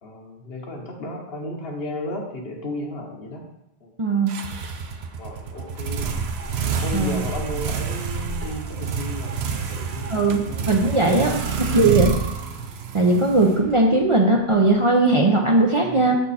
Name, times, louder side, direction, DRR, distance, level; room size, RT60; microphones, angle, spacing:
voice 1, 0.0-3.4 3.8-3.9 5.2-6.1 6.8-10.7 11.3-12.2 15.8-16.1, left 1 dB, 75° left, 1 dB, 1.4 m, -34 dB
voice 2, 4.0-4.4 6.9-7.2 10.1-11.4 11.7-12.1 12.9-16.2, right 2 dB, 35° right, -1 dB, 0.6 m, -18 dB
sound 1, 4.3-14.1, right 6 dB, 85° right, 0.9 m, -28 dB
7.7 x 4.5 x 4.2 m, 0.83 s
omnidirectional pair, 1.0 m